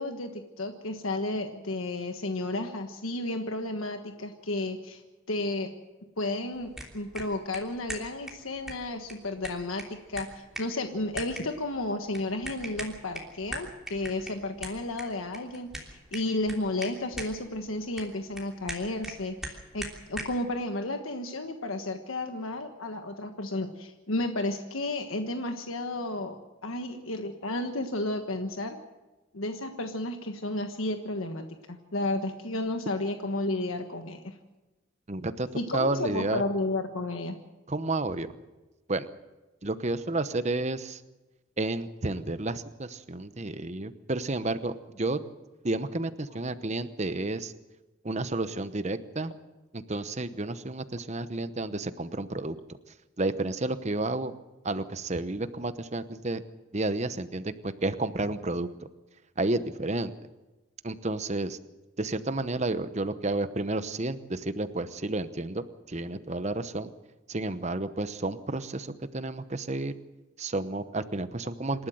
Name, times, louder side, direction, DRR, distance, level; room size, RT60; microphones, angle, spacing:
voice 1, 0.0-5.0 5.3-5.7 6.2-26.4 26.6-28.8 29.3-34.4 35.5-37.4, left 2 dB, 80° left, 6 dB, 1.4 m, -32 dB
sound 1, 6.5-20.4, right 1 dB, ahead, 3.2 m, -43 dB
voice 2, 35.1-35.5 35.7-36.4 37.7-38.3 38.9-39.1 39.6-41.0 41.6-45.2 45.6-47.5 48.0-49.4 49.7-52.6 53.2-54.3 54.6-56.4 56.7-58.7 59.4-60.1 60.8-61.6 62.0-66.9 67.3-69.9 70.4-71.9, right 2 dB, 35° right, 12 dB, 0.9 m, -31 dB
27.0 x 12.5 x 7.8 m, 1.1 s
head